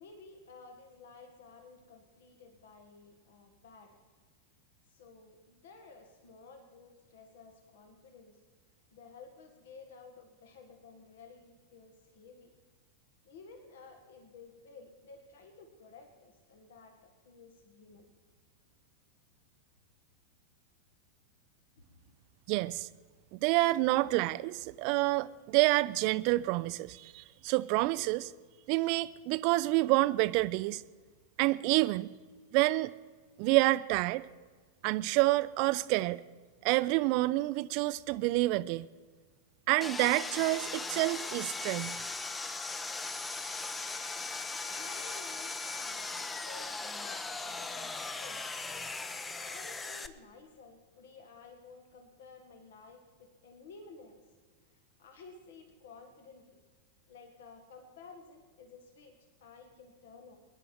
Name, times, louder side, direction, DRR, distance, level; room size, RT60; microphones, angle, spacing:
voice 1, 0.0-4.0 4.9-8.4 8.9-12.5 13.2-18.1 21.8-22.2 44.6-48.4 49.4-54.2 54.7-56.6 57.1-60.4, left 4 dB, 60° left, 5 dB, 1.8 m, -54 dB
voice 2, 22.5-22.9 23.3-28.3 28.7-30.8 31.4-32.1 32.5-32.9 33.4-34.3 34.8-36.2 36.6-38.9 39.7-42.0, right 20 dB, 45° right, 15 dB, 0.4 m, -28 dB
Sawing, 39.8-50.1, left 3 dB, 15° left, 0.8 m, -38 dB
22.5 x 11.0 x 4.6 m, 1.4 s
figure-of-eight pair, 90°, 0 cm